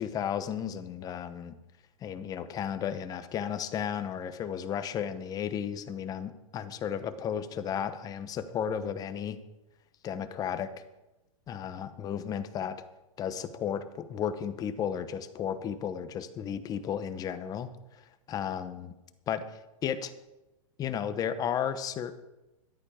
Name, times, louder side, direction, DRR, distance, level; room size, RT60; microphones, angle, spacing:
voice 1, 0.0-1.6 2.0-9.4 10.0-10.7 11.5-12.8 13.2-17.7 18.3-18.9 19.3-19.5 19.8-20.1 20.8-22.1, left 8 dB, 20° left, 11 dB, 0.9 m, -33 dB
13.5 x 11.5 x 5.1 m, 1.0 s
hypercardioid pair, 145°, 17 cm